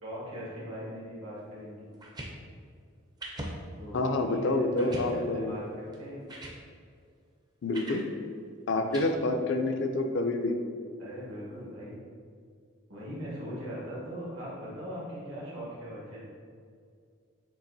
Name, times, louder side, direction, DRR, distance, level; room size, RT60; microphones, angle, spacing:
voice 1, 0.0-1.9 3.8-6.2 8.7-9.1 11.0-12.0 12.9-16.2, equal, 85° right, -7 dB, 1.4 m, -40 dB
sound 1, 1.9-2.3 3.2-3.5 4.0-4.1 4.8-5.1 5.9-6.0 6.3-6.6 7.7-8.0 8.9-9.0, right 1 dB, 20° right, 0.4 m, -40 dB
voice 2, 3.9-5.5 7.6-8.0 8.7-10.6, left 2 dB, 60° left, 5 dB, 0.4 m, -28 dB
6.8 x 2.9 x 2.6 m, 2.2 s
head